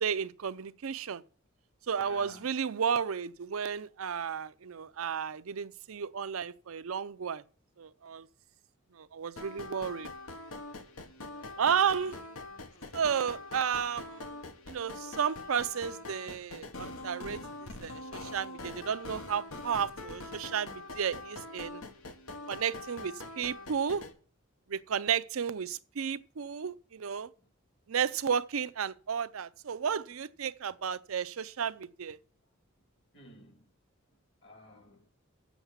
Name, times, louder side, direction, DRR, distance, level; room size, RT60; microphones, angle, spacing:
voice 1, 0.0-1.2 1.9-7.4 7.8-8.3 8.9-10.1 11.6-12.2 12.9-14.4 14.7-21.8 22.5-24.0 24.7-27.3 27.9-32.2, right 7 dB, 80° right, 0.5 m, -33 dB
voice 2, 1.9-2.5 10.7-10.9 11.3-12.2 12.7-12.9 13.2-13.3 33.1-33.6 34.4-35.1, left 1 dB, 55° left, 1.9 m, -54 dB
sound 1, 9.4-24.1, left 2 dB, 85° left, 1.3 m, -44 dB
7.9 x 7.2 x 7.3 m
head